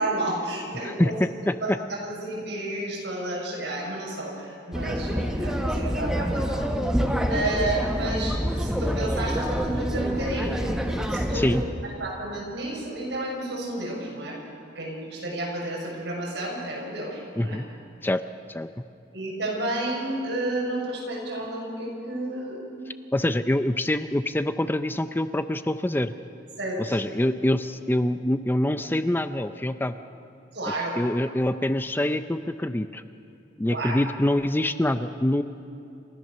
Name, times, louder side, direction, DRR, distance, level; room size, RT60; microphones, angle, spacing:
voice 1, 0.0-1.1 1.6-1.7 2.0-6.8 7.3-11.6 12.0-14.4 14.7-17.6 19.1-22.6 26.6-27.0 30.5-31.0 33.7-34.0, right 1 dB, 75° right, -3 dB, 6.4 m, -31 dB
voice 2, 0.8-1.8 11.3-11.6 17.4-17.6 18.0-18.2 18.5-18.7 23.1-26.1 26.8-30.0 31.0-33.0 33.6-35.4, left 1 dB, 10° left, 10 dB, 0.5 m, -25 dB
sound 1, 4.7-11.6, equal, 5° right, 1.2 m, -27 dB
28.5 x 14.0 x 6.7 m, 2.8 s
head